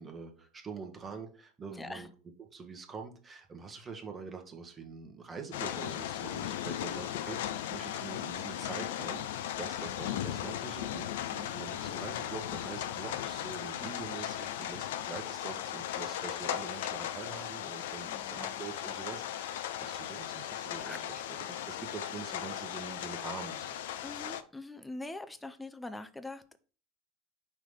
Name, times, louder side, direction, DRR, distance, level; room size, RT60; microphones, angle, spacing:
voice 1, 0.0-2.1 2.4-9.3 9.6-23.8, right 5 dB, 25° right, 4 dB, 1.3 m, -45 dB
voice 2, 1.7-2.1 11.3-11.6 13.8-14.0 18.1-18.6 20.8-21.0 24.0-26.6, left 2 dB, 10° left, 10 dB, 0.7 m, -44 dB
sound 1, 5.5-24.4, left 11 dB, 65° left, 0.4 m, -37 dB
5.7 x 3.1 x 5.4 m, 0.39 s
figure-of-eight pair, 75°, 0 cm